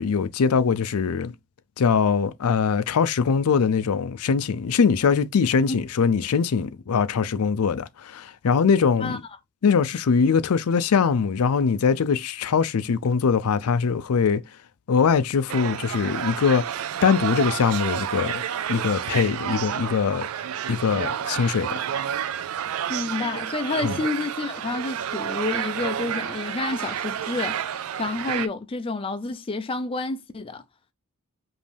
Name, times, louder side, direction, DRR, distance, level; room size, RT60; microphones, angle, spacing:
voice 1, 0.0-1.3 1.8-9.2 9.6-14.4 14.9-16.6 17.0-18.4 18.7-20.3 20.7-21.7 23.8-23.9, left 6 dB, 80° left, 0.4 m, -22 dB
sound 1, 15.5-28.5, right 9 dB, 70° right, 0.4 m, -30 dB
voice 2, 22.9-27.7 28.0-30.6, left 3 dB, 25° left, 0.4 m, -29 dB
5.2 x 2.7 x 3.3 m
head